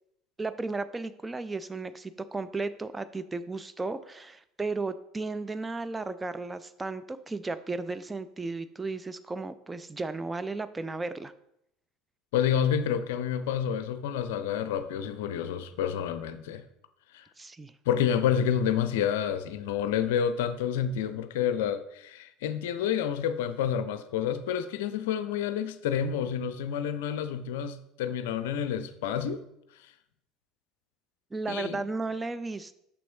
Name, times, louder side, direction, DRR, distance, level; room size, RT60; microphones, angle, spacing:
voice 1, 0.4-11.3 17.4-17.7 31.3-32.7, right 3 dB, 15° right, 0.4 m, -34 dB
voice 2, 12.3-16.6 17.1-17.2 17.9-29.4 31.5-31.8, left 8 dB, 70° left, 0.4 m, -29 dB
6.2 x 6.0 x 3.0 m
figure-of-eight pair, 65°, 0 cm